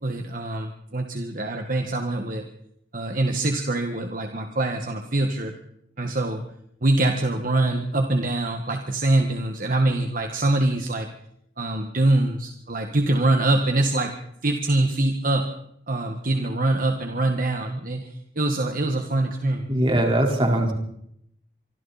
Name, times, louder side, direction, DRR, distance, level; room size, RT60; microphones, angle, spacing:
voice 1, 0.0-2.4 2.9-5.5 6.0-6.4 6.8-11.1 11.6-14.1 14.4-15.5 15.9-18.1 18.3-19.7, right 2 dB, 50° right, 4 dB, 1.8 m, -24 dB
voice 2, 19.7-20.7, right 1 dB, 30° right, 1 dB, 4.5 m, -21 dB
25.5 x 25.0 x 4.3 m, 0.73 s
head